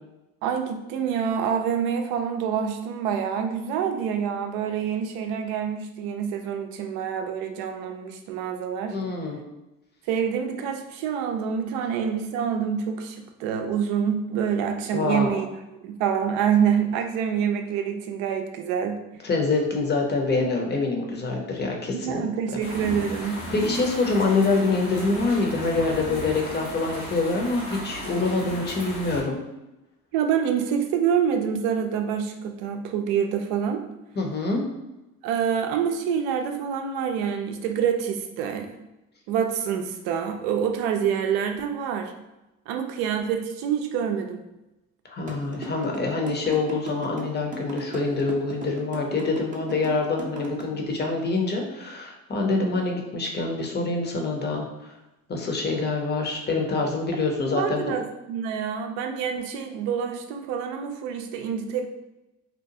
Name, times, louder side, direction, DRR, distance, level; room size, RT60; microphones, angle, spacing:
voice 1, 0.4-9.0 10.1-15.5 15.8-19.0 21.9-23.4 30.1-33.8 35.2-38.7 39.3-42.1 42.7-44.4 50.7-50.9 57.5-61.8, right 7 dB, 70° right, 6 dB, 0.5 m, -26 dB
voice 2, 8.9-9.4 14.9-15.3 19.2-22.2 23.5-29.4 34.2-34.6 45.0-54.9 55.3-57.9, left 3 dB, 25° left, 1 dB, 0.7 m, -25 dB
sound 1, 22.6-29.2, equal, 90° left, 1.4 m, -35 dB
sound 2, 45.3-50.6, right 2 dB, 20° right, 0.6 m, -36 dB
2.8 x 2.2 x 2.7 m, 0.98 s
hypercardioid pair, 65°, 40 cm